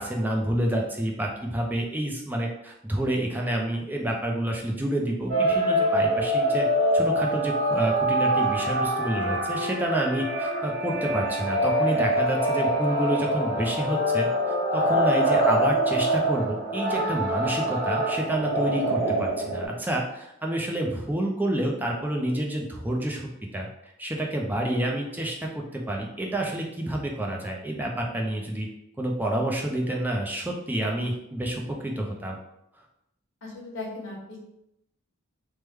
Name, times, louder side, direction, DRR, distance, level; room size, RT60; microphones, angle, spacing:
voice 1, 0.0-6.7 6.9-23.7 24.0-28.7 29.0-32.4, right 1 dB, 10° right, 0 dB, 0.4 m, -29 dB
sound 1, 5.3-19.7, right 1 dB, 60° right, 1.0 m, -25 dB
voice 2, 33.4-34.4, left 2 dB, 75° left, -2 dB, 1.0 m, -37 dB
3.1 x 2.1 x 3.3 m, 0.82 s
head